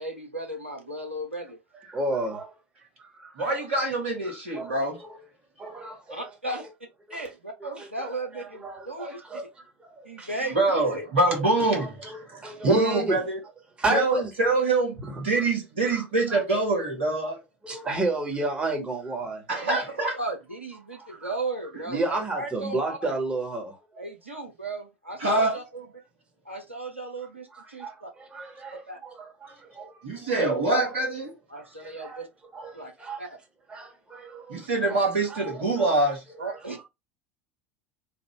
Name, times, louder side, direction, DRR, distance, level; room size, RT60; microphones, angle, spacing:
voice 1, 0.0-1.6 6.1-6.6 7.1-9.2 10.0-11.1 19.6-19.8 20.2-23.0 24.0-25.9 26.4-28.1 28.9-29.0 31.5-32.3 32.7-32.9 33.2-33.3 36.4-36.8, right 2 dB, 85° right, 0.9 m, -36 dB
voice 2, 1.8-2.5 3.0-3.5 4.2-4.8 5.6-6.6 7.1-7.3 7.8-10.5 11.8-13.2 13.8-14.3 15.1-15.2 15.9-16.4 17.6-19.4 20.9-21.3 21.9-23.8 27.5-30.3 31.8-32.2 32.5-33.2 33.7-35.4 35.8-36.6, right 2 dB, 15° right, 1.5 m, -33 dB
voice 3, 3.4-5.0 10.6-12.1 12.6-13.4 13.9-17.4 19.5-20.2 25.2-25.6 30.0-31.3 34.5-36.2, right 2 dB, 70° right, 1.6 m, -24 dB
3.4 x 2.5 x 3.3 m
figure-of-eight pair, 70°, 6 cm